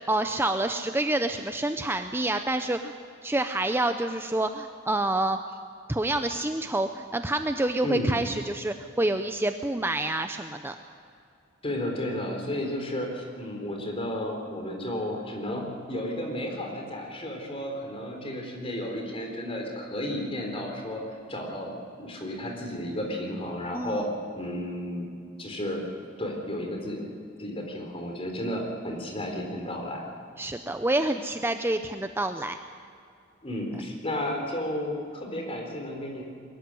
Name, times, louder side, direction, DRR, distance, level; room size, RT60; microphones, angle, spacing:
voice 1, 0.1-2.9 3.2-5.4 5.9-10.7 23.7-24.0 30.4-32.6, right 1 dB, 10° right, 7 dB, 0.6 m, -27 dB
voice 2, 7.8-8.2 11.6-21.0 21.3-24.1 24.3-25.1 25.4-25.8 26.2-27.0 27.4-30.1 33.4-36.2, left 1 dB, 30° left, 2 dB, 4.0 m, -33 dB
22.5 x 14.5 x 9.9 m, 2.4 s
head